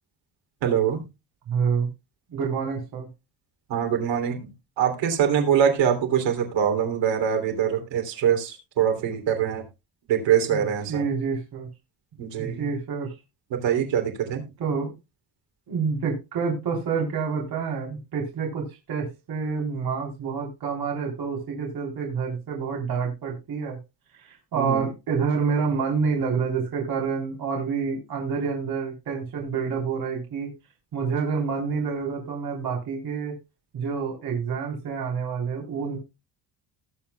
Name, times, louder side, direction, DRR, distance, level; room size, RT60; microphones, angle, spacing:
voice 1, 0.6-1.0 3.7-9.7 10.1-11.1 12.2-12.7 13.5-14.5 24.5-24.9, right 8 dB, 85° right, 4 dB, 3.1 m, -24 dB
voice 2, 1.5-1.9 2.3-3.1 10.5-11.7 12.1-13.1 14.6-14.9 15.7-23.8 24.2-30.5 30.9-33.3 33.7-36.0, right 5 dB, 55° right, 0 dB, 3.7 m, -28 dB
19.0 x 7.2 x 2.3 m, 0.25 s
cardioid pair, 175°, 43 cm